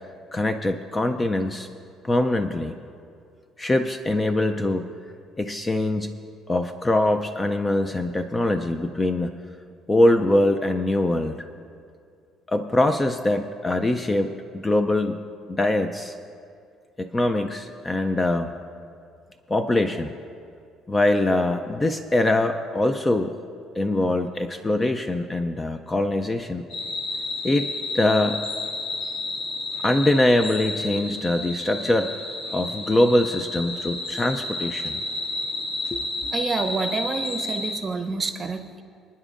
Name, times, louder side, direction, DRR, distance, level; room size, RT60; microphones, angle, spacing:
voice 1, 0.3-1.7 2.0-2.7 3.6-4.9 5.4-6.2 6.5-9.3 9.9-11.5 12.5-15.2 15.5-16.1 17.0-18.5 19.5-20.1 20.9-23.3 23.8-26.6 27.4-27.7 27.9-28.4 29.8-32.1 32.5-35.0 35.9-36.0, left 1 dB, 15° left, 7 dB, 0.3 m, -23 dB
sound 1, 26.7-37.8, left 2 dB, 80° left, 2.0 m, -31 dB
voice 2, 36.3-38.8, right 4 dB, 25° right, 7 dB, 0.7 m, -28 dB
26.0 x 9.9 x 2.5 m, 2.3 s
cardioid pair, 165°, 0 cm